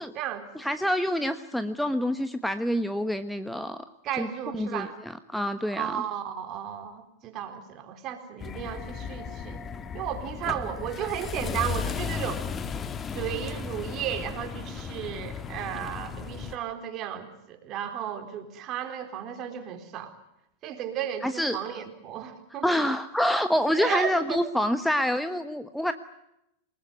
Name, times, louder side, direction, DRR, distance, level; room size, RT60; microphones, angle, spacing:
voice 1, 0.0-0.5 4.0-5.0 5.8-9.6 9.9-12.4 13.1-20.1 20.6-22.7 23.8-24.4, right 10 dB, 35° right, 7 dB, 4.1 m, -34 dB
voice 2, 0.5-3.8 4.2-4.3 4.5-4.9 5.3-6.0 21.2-21.6 22.6-25.9, equal, ahead, 10 dB, 1.3 m, -27 dB
sound 1, 8.4-16.6, left 6 dB, 20° left, 1.6 m, -35 dB
28.0 x 19.5 x 9.5 m, 0.83 s
figure-of-eight pair, 90°, 0 cm